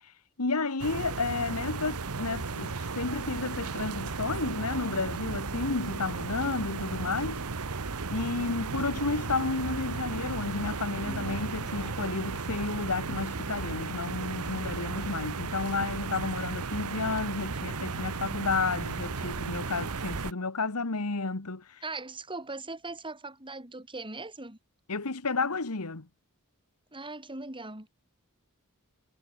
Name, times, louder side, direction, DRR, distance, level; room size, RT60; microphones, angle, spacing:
voice 1, 0.4-7.4 8.1-21.8 24.9-26.1, left 3 dB, 85° left, 1.6 m, -32 dB
sound 1, 0.8-20.3, right 4 dB, 80° right, 1.2 m, -35 dB
sound 2, 10.7-14.2, equal, 5° right, 4.8 m, -51 dB
voice 2, 21.8-24.6 26.9-27.9, right 3 dB, 25° right, 6.3 m, -39 dB
head